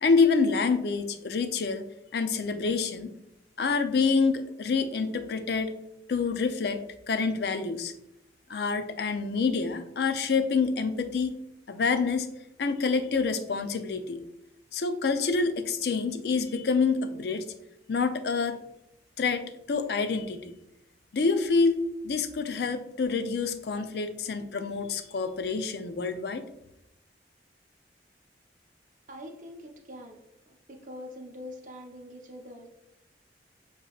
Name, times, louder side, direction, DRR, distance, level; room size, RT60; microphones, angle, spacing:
voice 1, 0.0-1.8 2.1-3.1 3.6-5.7 6.1-6.8 7.1-7.9 8.5-11.4 11.7-12.3 12.6-14.2 14.7-17.5 17.9-18.6 19.2-20.5 21.1-26.4, left 4 dB, 60° left, 9 dB, 0.4 m, -27 dB
voice 2, 29.1-30.2 30.5-32.7, left 1 dB, 45° right, 2 dB, 0.6 m, -44 dB
6.9 x 2.9 x 2.3 m, 0.83 s
head